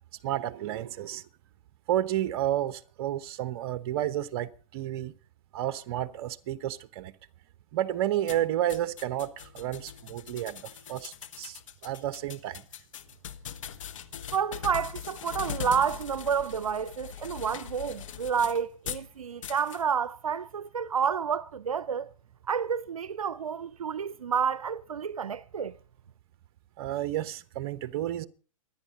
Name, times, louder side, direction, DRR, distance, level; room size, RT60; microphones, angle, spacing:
voice 1, 0.2-1.2 1.9-5.1 5.5-7.1 7.7-12.6 26.8-28.3, right 12 dB, 45° right, 1.0 m, -31 dB
sound 1, 8.3-19.1 19.4-19.8, left 9 dB, 65° left, 1.3 m, -41 dB
voice 2, 14.3-22.1 22.5-25.8, right 7 dB, 85° right, 0.6 m, -30 dB
24.5 x 10.0 x 4.2 m
hypercardioid pair, 125°, 18 cm